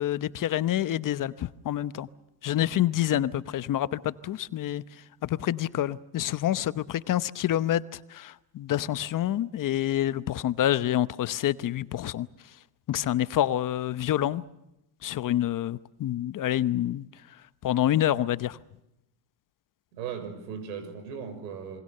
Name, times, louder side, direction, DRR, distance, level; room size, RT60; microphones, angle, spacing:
voice 1, 0.0-2.1 2.4-4.8 5.2-12.3 12.9-14.4 15.0-17.1 17.6-18.6, left 12 dB, 40° left, 0.9 m, -27 dB
voice 2, 19.9-21.8, right 7 dB, 85° right, 6.2 m, -37 dB
27.5 x 24.0 x 6.7 m
supercardioid pair, 95°, 49 cm